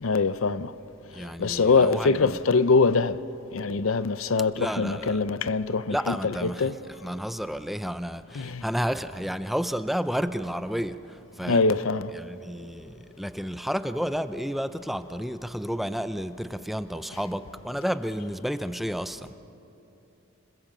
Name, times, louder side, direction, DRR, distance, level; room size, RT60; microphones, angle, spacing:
voice 1, 0.0-0.7 1.4-3.2 3.5-6.7 8.3-8.6 11.5-12.1, left 4 dB, 70° left, 0.6 m, -23 dB
voice 2, 1.1-2.6 4.6-5.2 5.9-6.7 7.0-11.7 12.1-19.3, equal, ahead, 0.5 m, -31 dB
26.5 x 21.0 x 7.5 m
head